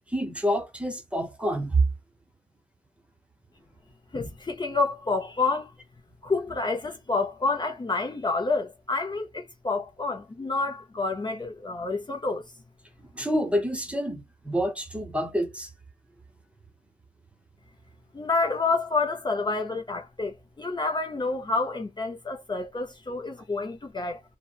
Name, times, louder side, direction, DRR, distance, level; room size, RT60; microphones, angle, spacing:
voice 1, 0.1-1.8 13.1-15.7, equal, 10° right, 0.7 m, -28 dB
voice 2, 4.1-5.7 6.2-12.4 18.1-24.2, left 3 dB, 30° left, 0.5 m, -28 dB
2.8 x 2.1 x 2.3 m
wide cardioid pair, 105°, 15 cm